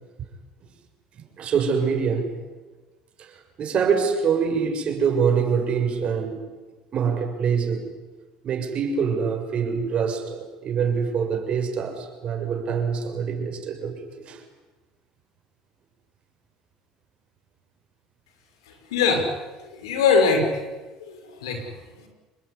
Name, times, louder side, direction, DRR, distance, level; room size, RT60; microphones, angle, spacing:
voice 1, 1.2-2.3 3.2-3.3 3.6-6.4 6.9-7.9 8.4-14.4, right 6 dB, 50° right, 4 dB, 6.8 m, -25 dB
voice 2, 18.9-19.3 19.8-20.6 21.0-21.6 22.0-22.1, left 5 dB, 90° left, 5 dB, 6.2 m, -21 dB
27.5 x 21.5 x 10.0 m, 1.2 s
supercardioid pair, 85°, 2 cm